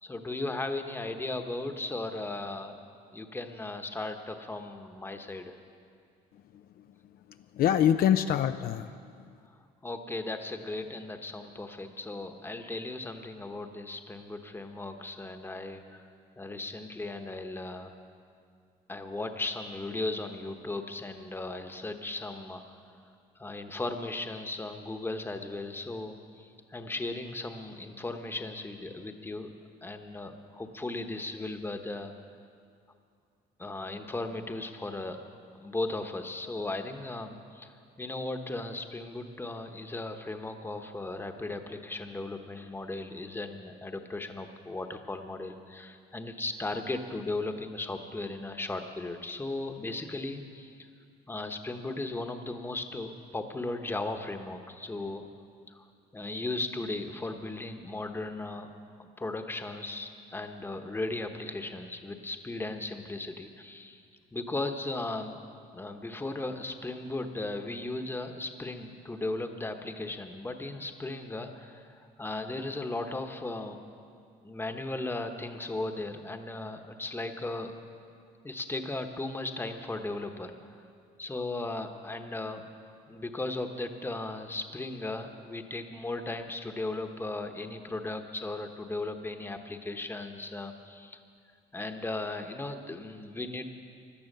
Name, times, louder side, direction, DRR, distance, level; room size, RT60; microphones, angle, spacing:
voice 1, 0.0-2.8 3.1-5.5 9.8-16.0 16.4-17.9 18.9-22.7 23.4-29.5 29.8-32.1 33.6-35.2 35.6-50.9 51.3-55.2 55.7-55.9 56.1-58.7 59.0-64.0 64.3-65.4 65.7-73.8 74.4-77.7 78.4-80.5 81.2-82.6 83.1-91.2 91.7-93.7, left 2 dB, 15° left, 6 dB, 1.1 m, -36 dB
voice 2, 6.3-8.9, left 10 dB, 60° left, 9 dB, 0.5 m, -27 dB
17.5 x 12.0 x 6.7 m, 2.3 s
cardioid pair, 110°, 17 cm